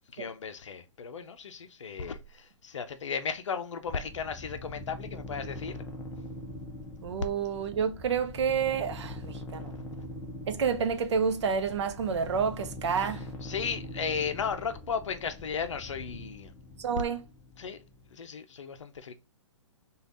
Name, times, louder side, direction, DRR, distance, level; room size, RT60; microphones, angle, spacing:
voice 1, 0.0-5.8 9.7-10.1 13.0-13.1 13.4-16.5 17.6-17.8 18.1-19.2, left 6 dB, 75° left, 0.5 m, -35 dB
sound 1, 3.9-18.1, left 1 dB, 15° left, 0.7 m, -43 dB
voice 2, 7.0-9.7 10.5-13.3 16.8-17.2, right 6 dB, 65° right, 0.7 m, -29 dB
3.3 x 2.4 x 3.8 m
figure-of-eight pair, 125°, 16 cm